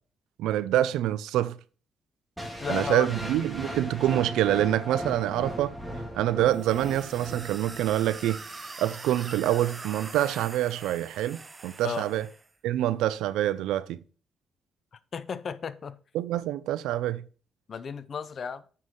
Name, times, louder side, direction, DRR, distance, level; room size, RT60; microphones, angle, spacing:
voice 1, 0.4-1.6 2.7-5.8 6.1-8.4 8.8-12.3 12.6-14.0 16.1-17.2, right 13 dB, 90° right, 0.5 m, -26 dB
sound 1, 2.4-8.4, equal, 5° right, 2.7 m, -37 dB
voice 2, 2.6-3.2 11.8-12.0 15.1-16.0 17.7-18.6, left 6 dB, 50° left, 0.7 m, -33 dB
sound 2, 6.5-12.5, right 3 dB, 25° right, 0.9 m, -43 dB
7.6 x 6.3 x 3.8 m
cardioid pair, 90°, 0 cm